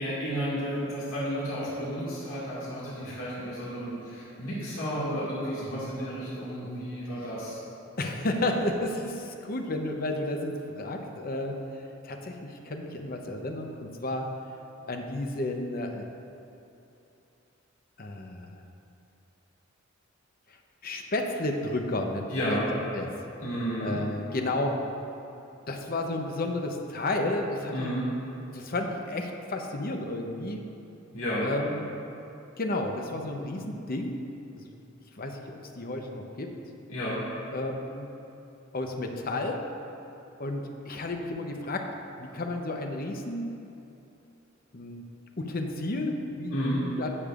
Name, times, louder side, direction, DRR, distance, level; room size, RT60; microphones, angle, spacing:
voice 1, 0.0-7.6 22.3-22.7 23.4-24.0 27.7-28.1 31.1-31.5 36.9-37.2 46.5-46.8, equal, 85° left, -8 dB, 2.0 m, -32 dB
voice 2, 8.0-14.3 14.9-16.1 18.0-18.6 20.5-20.6 20.8-22.6 22.9-23.1 23.8-24.8 25.7-27.9 28.5-30.6 31.4-31.9 32.6-34.2 34.6-34.7 35.2-36.5 37.5-38.1 38.7-39.6 40.4-43.5 44.7-45.0 45.4-47.1, left 2 dB, 45° left, 3 dB, 0.8 m, -32 dB
18.0 x 6.8 x 2.5 m, 2.8 s
head